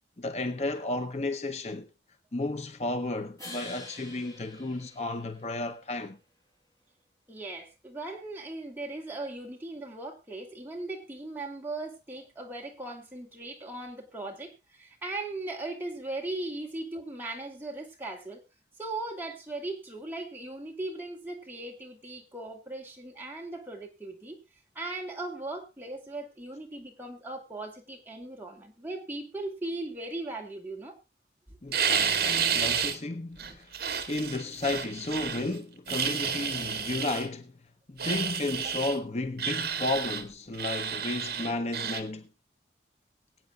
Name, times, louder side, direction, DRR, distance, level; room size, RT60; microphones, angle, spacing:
voice 1, 0.2-1.9 2.3-6.2 31.6-33.7 34.1-37.6 37.9-42.3, left 2 dB, 35° left, 0.7 m, -33 dB
sound 1, 3.4-5.7, left 1 dB, 20° left, 6.4 m, -46 dB
voice 2, 7.3-18.4 18.8-24.4 24.7-31.0 31.5-31.6 38.6-38.7, right 2 dB, 10° right, 2.6 m, -38 dB
sound 2, 31.7-33.0 33.4-35.5 35.9-37.3 38.0-39.0 39.4-40.2 40.5-42.0, right 7 dB, 55° right, 2.0 m, -30 dB
23.5 x 8.8 x 2.3 m
head